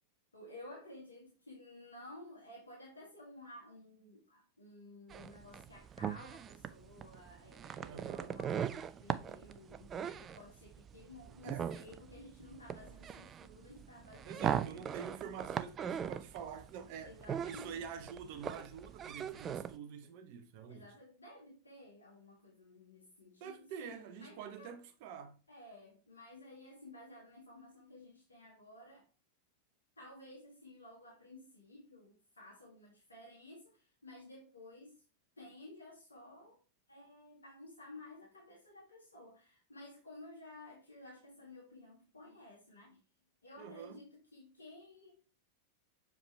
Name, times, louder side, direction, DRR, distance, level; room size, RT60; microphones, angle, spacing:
voice 1, 0.3-14.8 17.0-17.8 20.7-24.7 25.5-29.1 30.0-35.0 35.4-36.6 36.9-43.0 43.4-45.2, left 2 dB, 75° left, 1.7 m, -54 dB
sound 1, 5.1-19.8, right 8 dB, 25° right, 0.4 m, -40 dB
voice 2, 7.8-8.4 11.4-11.7 14.2-17.2 17.4-20.9 23.4-25.4 43.6-44.0, right 7 dB, 45° right, 1.0 m, -47 dB
6.9 x 4.9 x 3.2 m
figure-of-eight pair, 90°, 0 cm